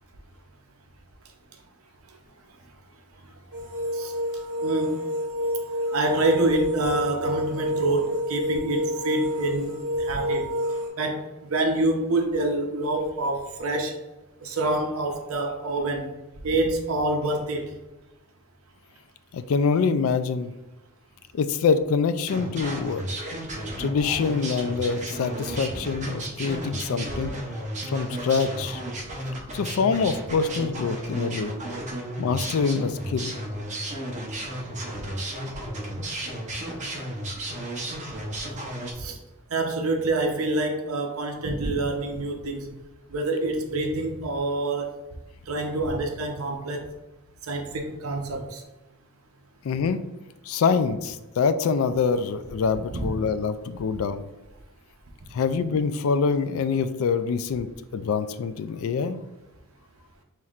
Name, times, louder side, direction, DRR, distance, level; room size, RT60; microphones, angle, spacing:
sound 1, 3.5-10.9, equal, 60° right, 1.5 m, -28 dB
voice 1, 4.6-5.0 5.9-10.5 11.0-11.2 11.5-13.9 14.4-16.1 16.4-17.7 27.2-27.3 39.0-39.2 39.5-42.7 43.1-44.9 45.5-46.8 47.5-48.6 52.9-53.1, right 2 dB, 75° right, 3 dB, 0.7 m, -26 dB
voice 2, 19.3-20.5 21.3-23.1 23.8-27.3 27.9-28.8 29.5-31.5 32.2-33.3 49.6-50.0 50.5-54.3 55.3-57.7 57.9-59.2, left 5 dB, 70° left, 12 dB, 0.3 m, -25 dB
sound 2, 22.3-38.9, right 1 dB, 35° right, 0.8 m, -33 dB
5.6 x 3.2 x 2.4 m, 1.0 s
head